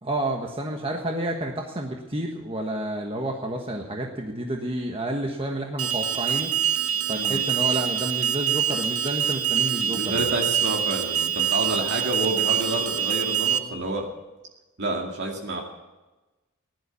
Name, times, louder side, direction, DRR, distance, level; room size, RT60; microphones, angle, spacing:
voice 1, 0.0-6.5 7.1-10.3, right 1 dB, 25° right, 1 dB, 1.4 m, -30 dB
Alarm, 5.8-13.6, right 9 dB, 80° right, 1.1 m, -25 dB
voice 2, 9.8-14.1 14.8-15.6, right 2 dB, 55° right, 0 dB, 2.3 m, -29 dB
16.0 x 11.5 x 6.9 m, 1.1 s
head